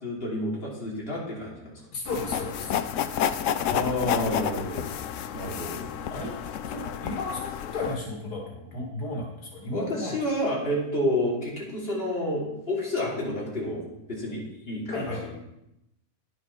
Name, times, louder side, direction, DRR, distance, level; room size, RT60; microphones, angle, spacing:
voice 1, 0.0-1.8 3.7-4.9 5.3-5.9 9.7-15.3, left 1 dB, 40° left, -5 dB, 3.2 m, -30 dB
voice 2, 1.9-2.8 6.1-6.3 6.7-10.1 14.9-15.3, left 2 dB, 85° left, -1 dB, 2.6 m, -34 dB
sound 1, 2.1-8.0, left 9 dB, 65° left, 0.9 m, -30 dB
10.5 x 7.5 x 5.9 m, 0.86 s
omnidirectional pair, 1.6 m